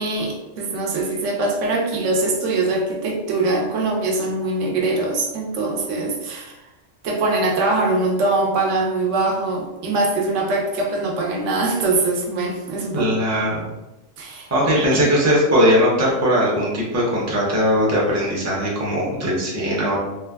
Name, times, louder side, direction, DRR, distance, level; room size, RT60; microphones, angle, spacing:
voice 1, 0.0-6.6 7.0-13.1 14.2-14.8, right 2 dB, 80° right, 1 dB, 0.9 m, -22 dB
voice 2, 12.9-13.6 14.5-20.0, equal, 20° right, -4 dB, 0.4 m, -19 dB
3.2 x 2.1 x 2.2 m, 1.0 s
omnidirectional pair, 1.3 m